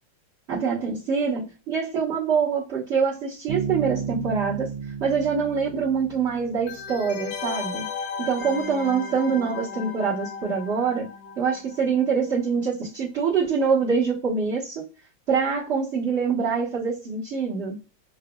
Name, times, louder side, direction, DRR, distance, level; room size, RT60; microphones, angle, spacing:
voice 1, 0.5-4.7 5.0-7.9 8.2-11.1 11.4-14.9 15.3-17.8, right 5 dB, 40° right, -9 dB, 1.4 m, -25 dB
Bass guitar, 3.5-7.1, right 6 dB, 80° right, 1.4 m, -33 dB
sound 1, 6.7-12.1 12.4-12.5, left 6 dB, 80° left, 1.6 m, -35 dB
5.9 x 2.5 x 2.3 m, 0.33 s
omnidirectional pair, 2.0 m